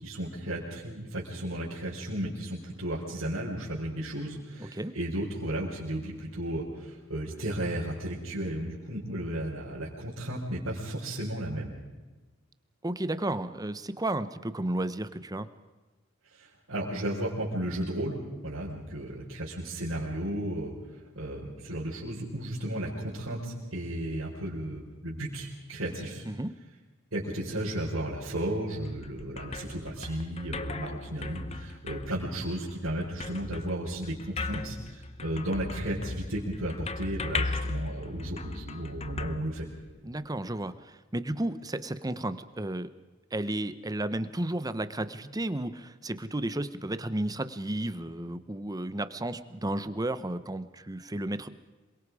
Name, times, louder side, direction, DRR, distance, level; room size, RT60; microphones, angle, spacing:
voice 1, 0.0-11.8 16.4-20.7 21.1-26.2 27.1-39.7, right 1 dB, 75° right, -8 dB, 4.9 m, -34 dB
voice 2, 4.6-4.9 12.8-15.5 26.2-26.5 40.0-42.9 43.3-51.5, right 1 dB, 20° right, 13 dB, 0.9 m, -33 dB
sound 1, 28.7-40.2, left 3 dB, 30° left, 0.9 m, -38 dB
27.0 x 23.0 x 4.9 m, 1.2 s
head